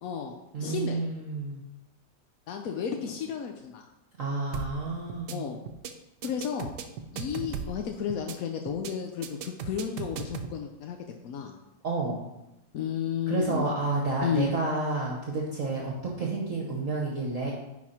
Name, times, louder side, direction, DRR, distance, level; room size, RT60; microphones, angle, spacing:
voice 1, 0.0-1.0 2.5-3.8 5.3-5.6 6.2-6.7 7.1-11.0 11.2-11.6 12.7-13.7 14.2-14.5, left 8 dB, 70° left, 4 dB, 0.8 m, -32 dB
voice 2, 0.5-1.6 4.2-5.4 11.8-12.2 13.3-17.5, right 3 dB, 50° right, -2 dB, 1.2 m, -30 dB
sound 1, 4.5-4.8 5.1-5.4 5.7-5.9 6.2-7.8 8.1-8.4 8.7-8.9 9.2-10.5, right 7 dB, 70° right, 1.2 m, -36 dB
10.0 x 4.2 x 4.3 m, 0.94 s
omnidirectional pair, 2.1 m